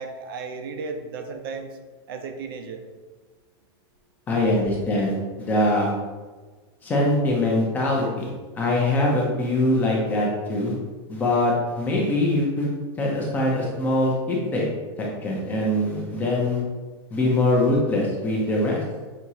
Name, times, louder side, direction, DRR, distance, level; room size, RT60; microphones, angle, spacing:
voice 1, 0.0-1.8 2.1-2.8, right 4 dB, 55° right, 5 dB, 0.5 m, -34 dB
voice 2, 4.3-5.9 6.8-8.3 8.6-10.8 11.1-12.7 13.0-14.7 15.0-16.6 17.1-18.8, left 1 dB, 10° left, -3 dB, 0.6 m, -23 dB
6.1 x 2.9 x 2.8 m, 1.3 s
supercardioid pair, 175°, 14 cm